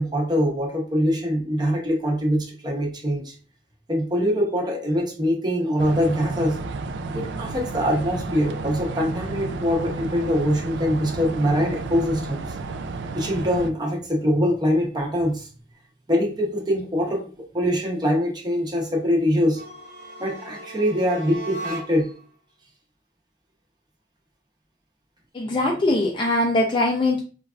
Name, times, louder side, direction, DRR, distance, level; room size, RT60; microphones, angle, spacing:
voice 1, 0.0-3.3 3.9-6.6 7.1-12.4 13.1-15.5 16.1-17.3 17.5-19.6 20.2-22.1, equal, 25° right, -1 dB, 0.8 m, -23 dB
sound 1, 5.8-13.7, right 3 dB, 90° right, 0.3 m, -32 dB
sound 2, 19.5-22.2, right 1 dB, 50° right, 1.0 m, -37 dB
voice 2, 25.3-27.2, left 2 dB, 30° left, 0 dB, 0.4 m, -21 dB
3.2 x 2.4 x 2.3 m, 0.36 s
head